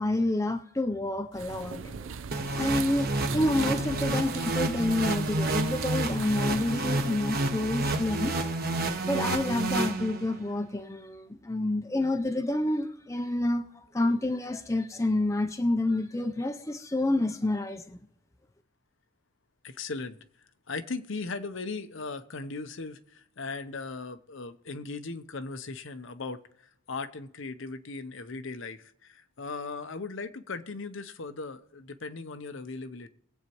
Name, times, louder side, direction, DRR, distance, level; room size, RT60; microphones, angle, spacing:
voice 1, 0.0-1.9 2.5-8.4 9.1-13.6 13.9-18.0, left 1 dB, 15° left, 0.5 m, -28 dB
sound 1, 1.3-7.3, right 6 dB, 65° right, 0.5 m, -40 dB
sound 2, 2.3-10.5, right 2 dB, 45° right, 1.2 m, -30 dB
voice 2, 19.6-20.2 20.7-26.4 26.9-33.1, left 3 dB, 60° left, 0.7 m, -38 dB
21.5 x 8.2 x 3.0 m
head